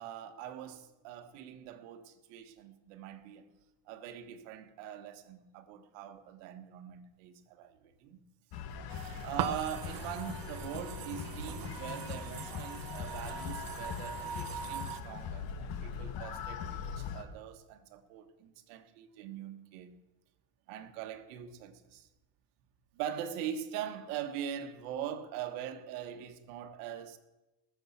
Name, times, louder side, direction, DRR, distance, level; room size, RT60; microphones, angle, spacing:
voice 1, 0.0-3.5 3.8-8.2 9.2-20.0 20.7-22.1 22.9-27.2, right 9 dB, 75° right, 1.6 m, -42 dB
sound 1, 8.5-17.2, left 7 dB, 50° left, 1.6 m, -41 dB
sound 2, 8.9-15.0, right 8 dB, 45° right, 1.1 m, -41 dB
19.5 x 7.3 x 7.2 m
supercardioid pair, 120°, 48 cm